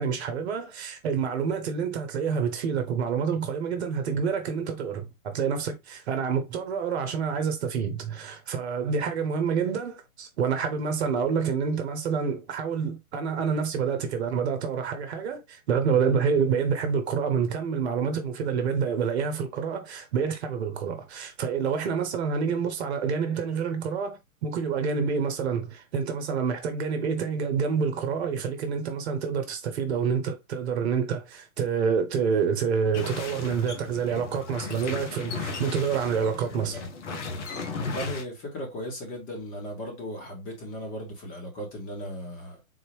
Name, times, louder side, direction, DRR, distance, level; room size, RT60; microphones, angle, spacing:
voice 1, 0.0-36.8, right 6 dB, 50° right, 1.0 m, -28 dB
sound 1, 32.9-38.2, left 4 dB, 55° left, 1.1 m, -35 dB
voice 2, 37.8-42.6, equal, 30° left, 1.8 m, -36 dB
3.9 x 2.9 x 3.2 m
hypercardioid pair, 125°, 43 cm